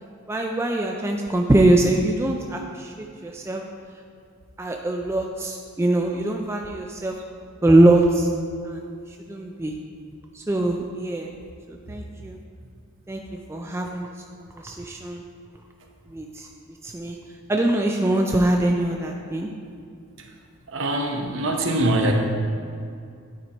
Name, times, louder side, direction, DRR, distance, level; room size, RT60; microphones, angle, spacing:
voice 1, 0.3-3.6 4.6-7.2 7.6-8.3 8.6-8.9 9.3-9.7 10.3-11.3 11.7-12.4 13.1-13.2 13.5-14.1 14.6-15.2 16.1-16.5 16.8-17.2 17.5-19.5, right 1 dB, 10° right, 1 dB, 0.3 m, -22 dB
voice 2, 20.7-22.1, right 1 dB, 60° right, 2 dB, 0.8 m, -23 dB
9.4 x 4.3 x 4.3 m, 2.3 s
head